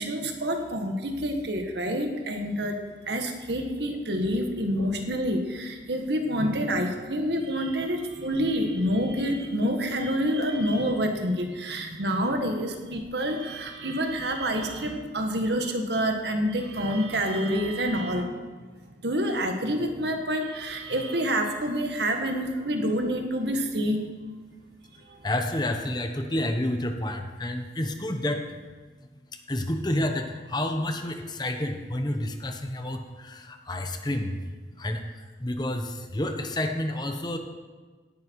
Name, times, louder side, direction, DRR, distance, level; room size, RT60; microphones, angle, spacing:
voice 1, 0.0-18.4 19.0-24.0 24.9-25.2, equal, 70° right, 4 dB, 1.8 m, -27 dB
voice 2, 25.2-28.4 29.5-30.3 30.5-33.0 33.7-34.3 34.8-35.0 35.4-35.9 36.1-37.4, left 1 dB, 25° left, 5 dB, 1.1 m, -29 dB
17.5 x 10.5 x 4.8 m, 1.4 s
head